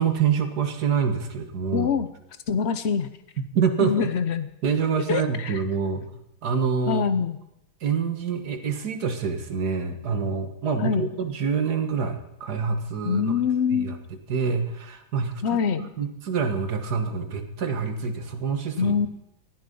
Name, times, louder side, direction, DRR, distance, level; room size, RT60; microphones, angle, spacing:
voice 1, 0.0-1.9 3.6-4.1 4.6-6.1 6.4-7.1 7.8-13.3 13.7-13.9 14.3-15.6 16.0-19.0, right 6 dB, 50° right, 7 dB, 1.8 m, -26 dB
voice 2, 1.7-2.1 2.5-3.1 3.8-4.5 5.1-5.6 6.9-7.4 10.8-11.1 13.0-14.0 15.4-15.9 18.8-19.1, left 6 dB, 75° left, 11 dB, 0.6 m, -24 dB
19.0 x 14.0 x 5.4 m, 0.84 s
omnidirectional pair, 2.3 m